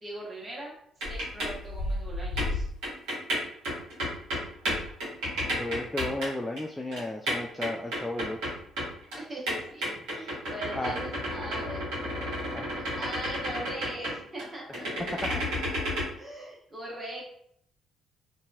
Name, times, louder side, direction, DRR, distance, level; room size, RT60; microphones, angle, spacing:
voice 1, 0.0-0.7 1.1-2.7 9.2-12.0 13.0-14.9 16.2-17.2, right 1 dB, 30° right, -4 dB, 1.3 m, -40 dB
sound 1, 1.0-6.3 6.6-6.7 6.9-9.2 9.5-14.5 14.7-16.0, equal, 70° right, 1.1 m, -31 dB
voice 2, 5.4-8.5 10.5-10.9 12.5-12.7, left 1 dB, 10° left, 0 dB, 0.3 m, -34 dB
2.8 x 2.6 x 2.3 m, 0.67 s
figure-of-eight pair, 45°, 0 cm